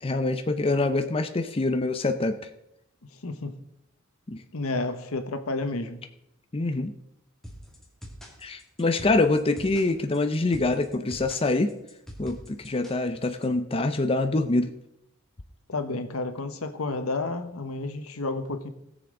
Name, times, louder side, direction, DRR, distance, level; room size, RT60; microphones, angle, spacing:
voice 1, 0.0-2.5 4.3-4.4 6.5-6.9 8.4-11.7 12.2-14.7, left 2 dB, 25° left, 0.6 m, -25 dB
voice 2, 3.2-3.5 4.5-6.0 15.7-18.7, left 3 dB, 80° left, 1.1 m, -31 dB
sound 1, 7.4-13.4, equal, ahead, 2.2 m, -44 dB
18.5 x 7.1 x 3.8 m
head